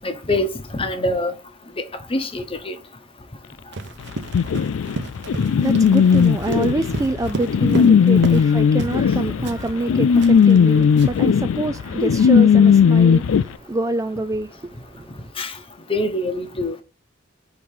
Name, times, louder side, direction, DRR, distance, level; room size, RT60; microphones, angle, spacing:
voice 1, 0.0-1.3 2.1-2.7 6.2-6.3 8.2-8.4 15.4-15.5 15.9-16.8, left 1 dB, 30° left, 0.9 m, -24 dB
Run, 3.7-8.5 8.8-9.1 9.4-11.3, right 2 dB, 65° right, 0.9 m, -31 dB
sound 1, 4.3-13.4, left 6 dB, 90° left, 0.4 m, -16 dB
voice 2, 5.5-15.3, right 2 dB, 15° right, 0.3 m, -26 dB
4.7 x 3.9 x 5.4 m
head